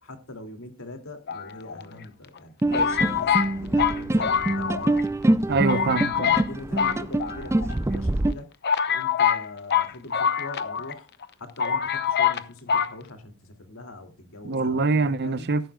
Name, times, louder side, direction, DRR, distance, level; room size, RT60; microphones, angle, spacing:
voice 1, 0.0-2.6 3.1-5.1 6.2-8.5 8.9-11.1 11.4-15.5, left 2 dB, 65° left, 2.5 m, -42 dB
sound 1, 1.3-2.0 2.7-5.0 5.3-5.4 5.7-6.5 6.8-7.7 8.3-8.4 8.6-10.9 11.2-11.3 11.6-12.4 12.7-12.9, left 7 dB, 50° left, 0.8 m, -25 dB
sound 2, 2.6-8.3, right 1 dB, 10° right, 0.4 m, -25 dB
voice 2, 5.5-6.3 14.4-15.7, right 3 dB, 50° right, 0.7 m, -24 dB
13.5 x 11.0 x 2.3 m
head